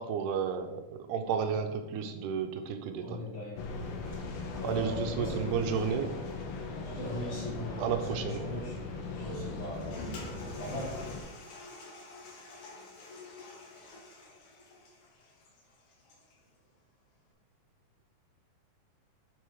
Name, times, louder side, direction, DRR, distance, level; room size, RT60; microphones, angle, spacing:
voice 1, 0.0-3.2 4.6-6.1 7.8-8.4, right 7 dB, 80° right, 7 dB, 2.1 m, -32 dB
voice 2, 3.0-3.6 4.0-6.0 6.8-8.8 9.1-10.1 10.6-11.0, equal, 50° left, -6 dB, 3.4 m, -39 dB
sound 1, 3.6-11.2, left 3 dB, 85° left, 2.5 m, -39 dB
Toilet flush, 9.5-16.4, left 2 dB, 70° left, 2.9 m, -49 dB
7.4 x 4.4 x 4.7 m, 1.1 s
omnidirectional pair, 3.7 m